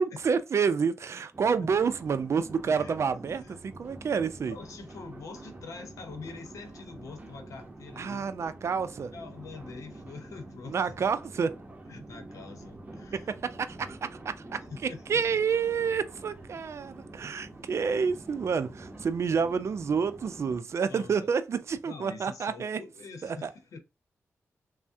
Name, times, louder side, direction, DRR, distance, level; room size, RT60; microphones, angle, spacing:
voice 1, 0.0-4.6 8.0-9.1 10.7-11.5 13.1-14.6 15.1-22.8 23.2-23.5, right 6 dB, 60° right, 0.4 m, -29 dB
sound 1, 1.3-20.6, right 2 dB, 30° right, 0.8 m, -47 dB
voice 2, 2.7-3.0 3.4-3.6 4.4-8.3 9.1-10.8 11.9-13.3 14.7-15.2 20.9-21.3 21.8-23.8, left 4 dB, 85° left, 0.7 m, -45 dB
3.3 x 2.1 x 2.7 m
cardioid pair, 65°, 5 cm